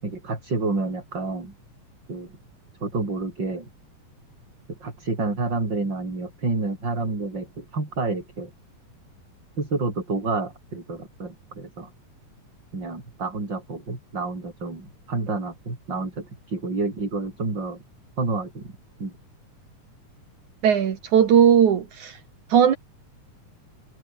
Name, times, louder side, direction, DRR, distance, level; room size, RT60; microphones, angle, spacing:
voice 1, 0.0-1.5 2.1-2.3 2.8-3.7 4.7-8.5 9.6-11.9 12.7-17.8 18.2-19.1, right 3 dB, 35° right, 6.3 m, -29 dB
voice 2, 20.6-22.2 22.5-22.8, right 8 dB, 70° right, 3.5 m, -18 dB
omnidirectional pair, 3.6 m